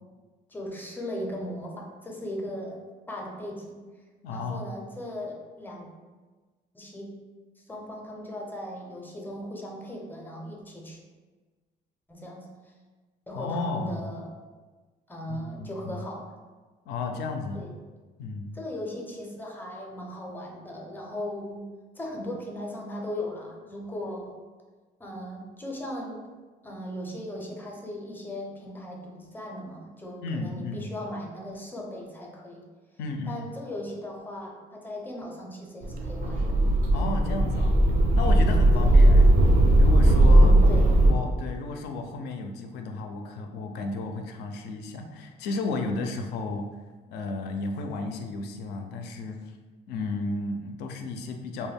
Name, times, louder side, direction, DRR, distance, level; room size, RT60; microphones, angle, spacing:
voice 1, 0.5-2.8 3.1-3.8 4.3-5.9 6.7-7.1 7.7-11.0 12.1-12.7 13.3-14.3 15.1-16.3 17.5-17.7 18.5-21.7 22.0-24.4 25.0-26.2 26.6-32.7 33.3-36.6 38.8-39.1 40.3-41.1, left 1 dB, 10° left, -1 dB, 0.5 m, -38 dB
voice 2, 4.2-4.7 13.3-14.1 15.3-16.1 16.9-17.7 18.2-18.6 30.2-30.9 33.0-33.5 36.9-37.7 38.1-39.3 39.8-40.5 41.0-46.7 47.1-49.4 49.9-51.7, left 3 dB, 80° left, 4 dB, 0.4 m, -33 dB
sound 1, 35.8-41.1, right 1 dB, 50° right, 0.4 m, -18 dB
2.2 x 2.1 x 3.4 m, 1.3 s
cardioid pair, 110°, 17 cm